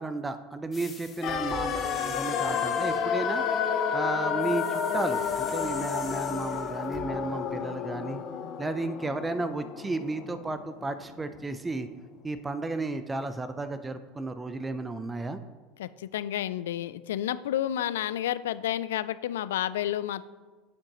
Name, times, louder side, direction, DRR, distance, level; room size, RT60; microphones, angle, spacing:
voice 1, 0.0-3.4 3.9-8.2 8.6-11.9 12.2-15.4, right 3 dB, 15° right, 10 dB, 0.5 m, -33 dB
sound 1, 0.7-3.1 4.4-7.1, left 2 dB, 20° left, 1.7 m, -44 dB
sound 2, 1.2-11.2 11.4-11.5, left 7 dB, 50° left, 0.9 m, -31 dB
voice 2, 15.8-20.3, left 12 dB, 75° left, 16 dB, 0.3 m, -30 dB
10.5 x 7.6 x 3.0 m, 1.3 s
hypercardioid pair, 80°, 0 cm